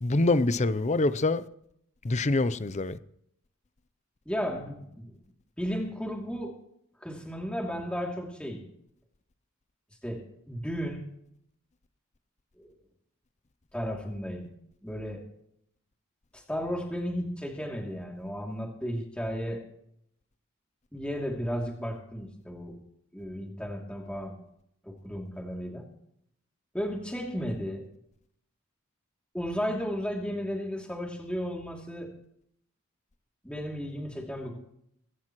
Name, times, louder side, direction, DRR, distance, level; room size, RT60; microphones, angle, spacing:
voice 1, 0.0-1.4 2.0-3.0, left 2 dB, 35° left, 0.6 m, -25 dB
voice 2, 4.3-5.1 5.6-6.6 7.0-8.6 10.0-11.0 12.6-12.7 13.7-14.5 14.8-15.2 16.3-19.6 20.9-22.8 23.1-24.4 24.8-25.8 26.7-27.9 29.3-32.1 33.4-34.6, equal, 5° left, 2.8 m, -34 dB
24.0 x 13.5 x 3.1 m
head